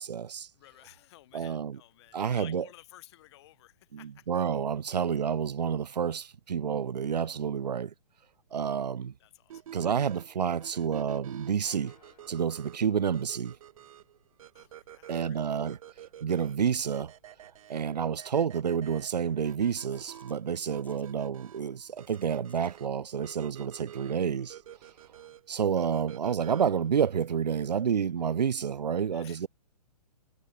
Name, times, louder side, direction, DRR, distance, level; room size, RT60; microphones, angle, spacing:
voice 1, 0.0-0.5 1.3-1.8 2.1-2.6 3.9-7.9 8.5-9.1 9.7-11.9 12.3-13.6 15.1-15.8 16.2-17.1 17.7-24.6 25.5-29.5, right 7 dB, 85° right, 0.8 m, -29 dB
voice 2, 0.5-4.3 4.9-5.0 9.2-9.6 14.5-15.6 29.1-29.5, left 16 dB, 40° left, 1.5 m, -55 dB
sound 1, 9.5-26.9, right 11 dB, 55° right, 1.4 m, -50 dB
sound 2, 11.6-14.3, left 8 dB, 70° left, 6.7 m, -65 dB
sound 3, 19.9-25.4, left 5 dB, 10° left, 2.9 m, -65 dB
hypercardioid pair, 140°, 21 cm